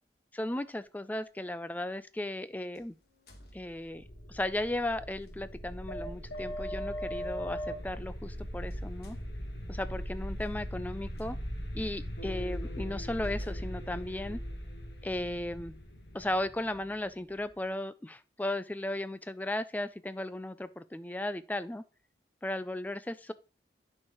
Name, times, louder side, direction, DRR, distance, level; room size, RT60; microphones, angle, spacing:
voice 1, 0.3-2.9 3.5-4.0 4.3-9.2 9.7-11.4 11.7-14.4 15.0-15.7 16.1-21.8 22.4-23.3, left 1 dB, 10° left, 13 dB, 0.3 m, -36 dB
sound 1, 0.7-0.8 2.7-4.2 5.2-5.4 7.2-7.3 8.3-8.4 8.7-11.3 11.9-12.0 12.5-12.6 13.2-15.0, equal, 60° left, 1.3 m, -57 dB
sound 2, 3.8-17.5, equal, 85° left, 1.4 m, -39 dB
11.0 x 4.5 x 3.0 m, 0.37 s
head